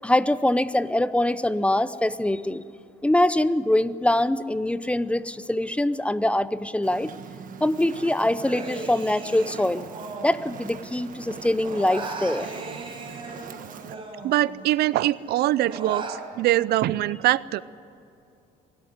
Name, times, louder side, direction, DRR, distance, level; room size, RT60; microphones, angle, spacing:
voice 1, 0.0-2.6 3.0-7.1 7.6-9.9 10.2-12.5, left 1 dB, 5° left, 15 dB, 0.7 m, -23 dB
Fire, 6.8-13.9, right 7 dB, 55° right, 1.5 m, -42 dB
Human voice, 8.4-11.0 11.3-14.8 15.1-16.2, right 3 dB, 30° right, 4.7 m, -38 dB
voice 2, 13.9-17.6, right 14 dB, 70° right, 19 dB, 0.5 m, -23 dB
24.0 x 13.5 x 9.6 m, 2.6 s
cardioid pair, 110°, 17 cm